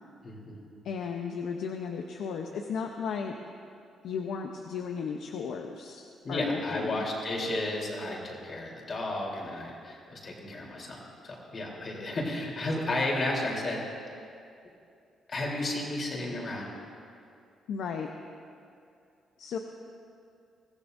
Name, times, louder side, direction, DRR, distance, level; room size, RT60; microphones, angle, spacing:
voice 1, 0.2-0.6 6.2-14.1 15.3-16.7, left 1 dB, 45° left, -2 dB, 3.6 m, -33 dB
voice 2, 0.8-3.3 4.0-6.0 6.3-7.0 17.7-18.1 19.4-19.6, left 6 dB, 75° left, 3 dB, 0.8 m, -34 dB
23.0 x 15.0 x 2.7 m, 2.5 s
cardioid pair, 90°, 0 cm